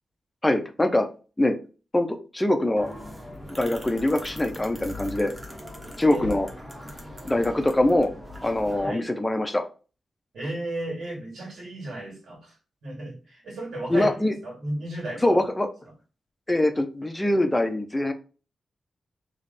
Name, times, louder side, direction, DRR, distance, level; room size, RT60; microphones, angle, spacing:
voice 1, 0.4-1.1 1.4-1.6 1.9-2.9 3.6-5.3 6.0-6.5 7.2-8.1 8.4-9.7 13.9-14.3 15.2-15.7 16.5-18.1, left 1 dB, 10° left, 6 dB, 0.6 m, -23 dB
sound 1, 2.8-8.9, left 1 dB, 15° right, 1.0 m, -40 dB
voice 2, 8.7-9.1 10.3-12.6 12.8-15.4, right 1 dB, 85° right, -2 dB, 2.3 m, -34 dB
3.4 x 3.1 x 4.1 m, 0.34 s
wide cardioid pair, 170°, 0 cm